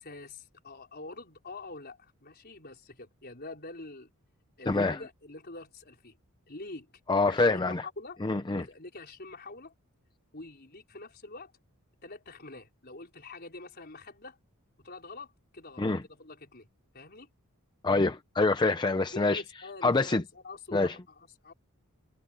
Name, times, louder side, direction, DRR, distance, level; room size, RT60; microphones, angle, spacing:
voice 1, 0.0-4.1 4.6-6.1 6.5-6.9 7.2-8.2 8.5-9.7 10.3-11.5 12.0-14.4 14.8-16.7 16.9-17.3 19.1-21.5, left 2 dB, 45° left, 4.6 m, -45 dB
voice 2, 4.7-5.0 7.1-7.9 8.2-8.7 15.8-16.0 17.8-19.4 19.8-20.2 20.7-21.0, left 3 dB, 20° left, 0.5 m, -26 dB
head